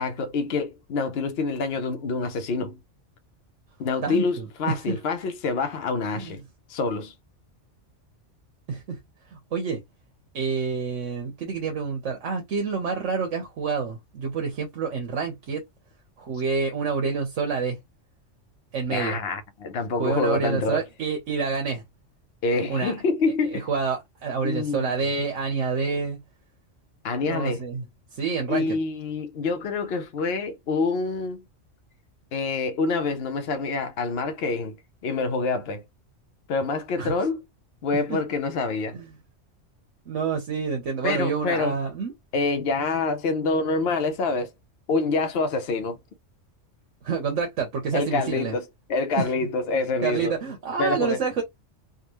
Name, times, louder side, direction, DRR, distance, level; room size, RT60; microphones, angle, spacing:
voice 1, 0.0-2.8 3.8-6.4 6.7-7.1 18.9-20.8 22.4-23.7 24.4-24.9 27.0-27.6 28.5-31.4 32.3-34.8 35.0-35.8 36.5-37.4 37.8-38.9 41.0-41.7 42.3-44.5 44.9-46.0 47.9-48.6 48.9-50.3 50.8-51.2, left 3 dB, 60° left, 0.9 m, -26 dB
voice 2, 4.0-5.0 6.1-6.4 8.7-9.0 9.3-9.8 10.3-15.6 16.2-17.8 18.7-19.2 19.9-21.8 22.7-22.9 23.5-26.2 27.2-27.8 28.1-28.8 37.0-37.1 37.9-38.2 38.9-39.1 40.1-42.1 47.0-48.6 49.2-49.5 50.0-51.4, right 5 dB, 75° right, 1.2 m, -28 dB
3.6 x 2.4 x 2.9 m
omnidirectional pair, 1.3 m